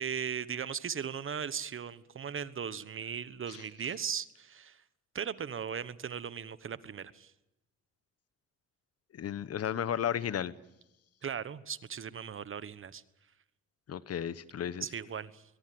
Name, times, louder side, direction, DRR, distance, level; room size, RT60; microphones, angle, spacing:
voice 1, 0.0-4.8 5.1-7.3 11.2-13.0 14.8-15.4, right 7 dB, 45° right, 16 dB, 1.2 m, -38 dB
voice 2, 9.1-10.5 13.9-14.8, left 9 dB, 55° left, 16 dB, 1.1 m, -34 dB
22.5 x 22.0 x 7.8 m, 0.92 s
cardioid pair, 90°, 30 cm